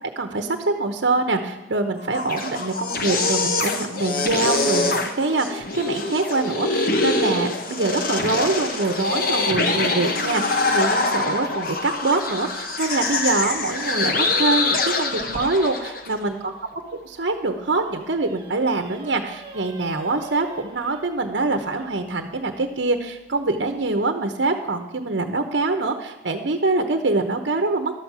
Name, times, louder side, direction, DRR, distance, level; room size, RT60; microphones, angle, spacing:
voice 1, 0.0-16.5 16.9-27.9, right 3 dB, 80° right, 6 dB, 0.9 m, -24 dB
sound 1, 2.0-16.1, left 3 dB, 50° left, 1.0 m, -24 dB
sound 2, 7.8-11.9 13.3-16.5 17.1-22.1, right 1 dB, 30° right, 1.0 m, -42 dB
12.0 x 7.3 x 6.0 m, 1.0 s
head